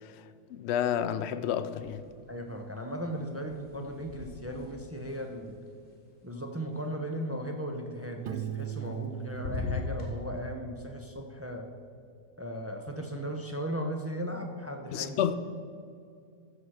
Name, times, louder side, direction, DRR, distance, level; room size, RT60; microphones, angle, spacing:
voice 1, 0.5-2.0 14.9-15.4, left 9 dB, 80° left, 0.6 m, -30 dB
sound 1, 1.7-2.4 2.7-6.8 8.4-9.1 9.3-10.1, left 4 dB, 35° left, 2.1 m, -40 dB
voice 2, 2.3-5.6 6.2-11.6 12.4-15.1, equal, 20° right, 0.4 m, -37 dB
Piano, 8.3-11.0, right 13 dB, 85° right, 1.2 m, -40 dB
14.5 x 4.9 x 6.4 m
omnidirectional pair, 1.7 m